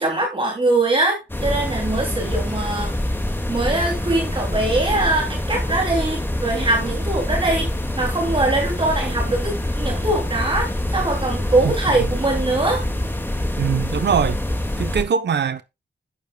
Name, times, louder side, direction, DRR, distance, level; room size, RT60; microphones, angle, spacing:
voice 1, 0.0-2.9 3.5-7.7 8.0-12.8, right 2 dB, 30° right, 3.3 m, -22 dB
sound 1, 1.3-15.0, left 1 dB, 10° left, 2.4 m, -25 dB
voice 2, 13.6-14.4 14.8-15.6, right 7 dB, 70° right, 1.1 m, -21 dB
12.0 x 9.6 x 2.4 m
wide cardioid pair, 175°, 19 cm